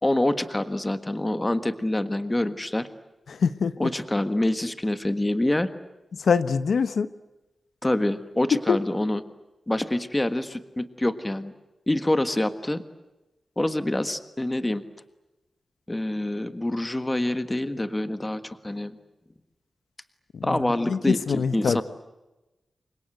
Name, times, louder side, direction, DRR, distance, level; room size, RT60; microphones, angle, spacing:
voice 1, 0.0-2.9 3.8-5.7 7.8-9.2 9.7-11.5 11.9-12.8 13.6-14.8 15.9-19.0 20.4-21.8, left 1 dB, 15° left, 10 dB, 1.5 m, -26 dB
voice 2, 3.3-3.9 6.2-7.1 8.7-8.8 20.3-20.6 20.9-21.8, left 5 dB, 80° left, 12 dB, 1.1 m, -24 dB
29.5 x 24.5 x 7.9 m, 1.0 s
wide cardioid pair, 165°, 0 cm